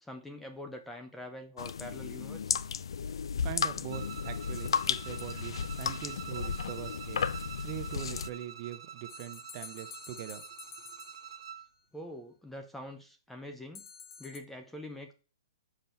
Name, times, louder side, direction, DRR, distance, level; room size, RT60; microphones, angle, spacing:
voice 1, 0.0-2.7 11.9-13.8 14.2-15.1, left 1 dB, 5° left, 0.5 m, -44 dB
sound 1, 1.6-8.3, left 6 dB, 85° left, 0.4 m, -34 dB
voice 2, 3.4-7.3 7.6-10.4, right 12 dB, 35° right, 0.9 m, -42 dB
Bowed string instrument, 3.9-11.7, right 8 dB, 70° right, 0.5 m, -46 dB
Small bells various, 9.1-11.6 13.7-14.4, left 6 dB, 45° left, 1.0 m, -49 dB
5.5 x 5.2 x 4.5 m
hypercardioid pair, 150°, 3 cm